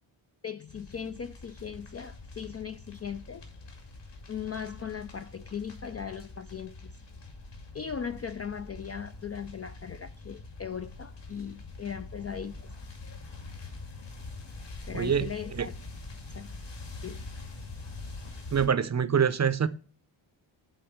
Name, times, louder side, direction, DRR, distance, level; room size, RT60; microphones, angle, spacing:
voice 1, 0.4-3.5 4.3-6.9 7.7-12.7 13.0-13.2 14.9-15.5 16.3-16.5 17.0-17.3, left 7 dB, 35° left, 0.4 m, -38 dB
sound 1, 0.7-18.7, left 3 dB, 55° left, 2.5 m, -44 dB
voice 2, 14.9-15.3 15.5-15.7 18.5-19.7, right 7 dB, 35° right, 0.6 m, -25 dB
8.0 x 3.9 x 6.4 m
wide cardioid pair, 105°, 50 cm